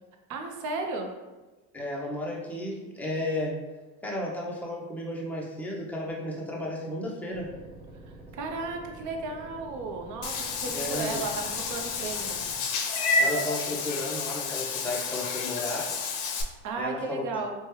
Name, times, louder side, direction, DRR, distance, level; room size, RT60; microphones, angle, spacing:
voice 1, 0.3-1.1 8.3-12.4 16.6-17.5, right 3 dB, 50° right, 3 dB, 0.6 m, -34 dB
voice 2, 1.7-3.6 4.0-7.5 10.7-11.3 13.2-15.9 16.8-17.2, left 1 dB, 5° left, -3 dB, 0.5 m, -33 dB
sound 1, 7.3-12.6, right 2 dB, 20° right, 1.2 m, -47 dB
Meow / Water / Bathtub (filling or washing), 10.2-16.4, left 4 dB, 65° left, 0.5 m, -30 dB
3.1 x 2.2 x 3.0 m, 1.2 s
supercardioid pair, 95°, 41 cm